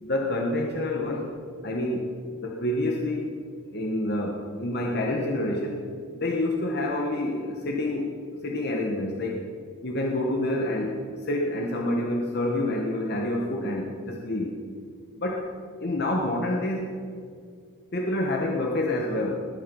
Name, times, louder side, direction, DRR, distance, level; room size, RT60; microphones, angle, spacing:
voice 1, 0.0-1.4 1.6-2.1 2.4-3.3 3.7-5.8 6.1-8.1 8.4-9.4 9.8-10.9 11.2-14.5 15.2-15.4 15.8-17.0 17.9-19.5, left 1 dB, 45° left, 1 dB, 1.2 m, -27 dB
20.0 x 8.6 x 5.4 m, 2.1 s
head